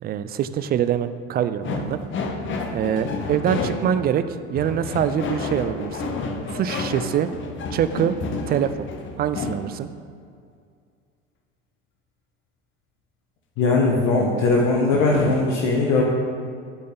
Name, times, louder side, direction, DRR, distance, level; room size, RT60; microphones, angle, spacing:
voice 1, 0.0-2.0 2.7-4.2 4.5-6.1 6.5-7.3 7.7-8.2 8.5-8.9 9.2-9.9, right 9 dB, 30° right, 12 dB, 0.4 m, -24 dB
sound 1, 1.6-4.1 4.6-9.6 14.9-15.5, left 3 dB, 35° left, 1.1 m, -30 dB
voice 2, 13.6-16.0, left 3 dB, 50° left, -1 dB, 1.3 m, -19 dB
8.8 x 8.3 x 4.0 m, 2.2 s
figure-of-eight pair, 70°, 35 cm